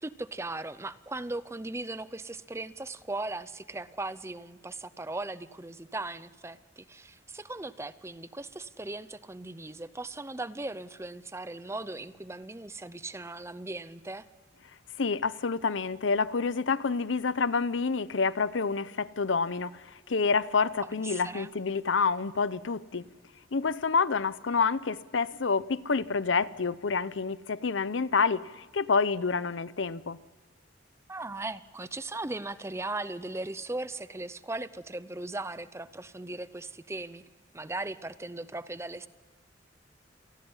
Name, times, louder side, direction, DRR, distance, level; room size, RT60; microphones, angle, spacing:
voice 1, 0.0-14.3 20.8-21.5 31.1-37.2 37.5-39.1, right 2 dB, 15° right, 0.6 m, -38 dB
voice 2, 15.0-23.1 23.5-30.2, left 4 dB, 75° left, 0.7 m, -28 dB
27.5 x 19.0 x 5.6 m
head